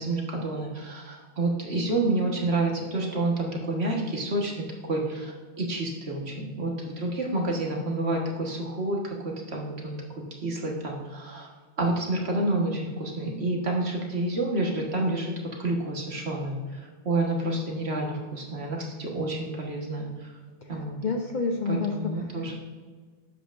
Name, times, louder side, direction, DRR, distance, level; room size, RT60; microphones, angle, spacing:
voice 1, 0.0-10.0 10.4-11.5 11.8-15.3 15.6-20.3 20.7-21.0 21.7-22.5, right 2 dB, 70° right, 0 dB, 1.8 m, -29 dB
voice 2, 21.0-21.9 22.2-22.5, left 4 dB, 50° left, 3 dB, 0.7 m, -29 dB
11.0 x 7.9 x 2.6 m, 1.5 s
omnidirectional pair, 1.1 m